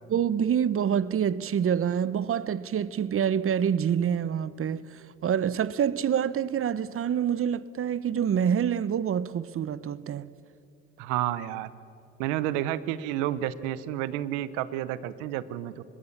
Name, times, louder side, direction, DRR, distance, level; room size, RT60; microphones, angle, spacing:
voice 1, 0.1-10.3, right 8 dB, 45° right, 0.8 m, -27 dB
voice 2, 11.0-11.7 12.2-15.8, right 12 dB, 90° right, 0.8 m, -30 dB
25.5 x 21.0 x 7.2 m
supercardioid pair, 60°, 30 cm